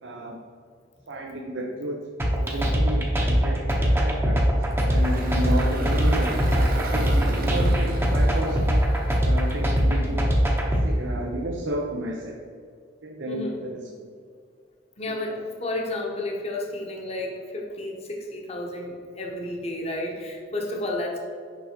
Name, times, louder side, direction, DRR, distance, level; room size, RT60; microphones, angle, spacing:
voice 1, 0.0-0.4 1.1-2.0 2.4-4.4 4.7-7.1 7.5-8.6 9.2-10.3 10.8-12.4 13.0-14.1 15.1-15.4, right 1 dB, 85° right, 0 dB, 0.8 m, -32 dB
sound 1, 2.2-10.9, equal, 10° right, 0.8 m, -21 dB
Engine, 4.7-10.0, right 2 dB, 50° right, 0.9 m, -35 dB
voice 2, 13.3-13.6 15.0-21.2, left 1 dB, 35° left, 0 dB, 1.0 m, -31 dB
6.1 x 5.5 x 4.4 m, 2.2 s
head